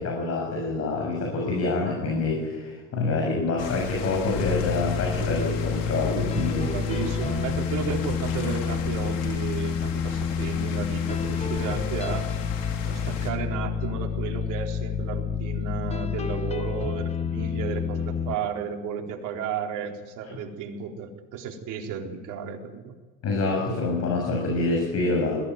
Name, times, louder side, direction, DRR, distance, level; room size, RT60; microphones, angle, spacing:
voice 1, 0.0-6.7 23.2-25.4, left 3 dB, 40° left, 0 dB, 6.9 m, -26 dB
sound 1, 3.6-13.3, left 6 dB, 60° left, 3.9 m, -36 dB
sound 2, 4.3-18.4, left 6 dB, 15° left, 0.6 m, -29 dB
voice 2, 6.7-12.3 12.8-22.8, right 6 dB, 50° right, 2 dB, 4.1 m, -33 dB
21.0 x 16.0 x 9.4 m, 1.4 s
supercardioid pair, 110°, 39 cm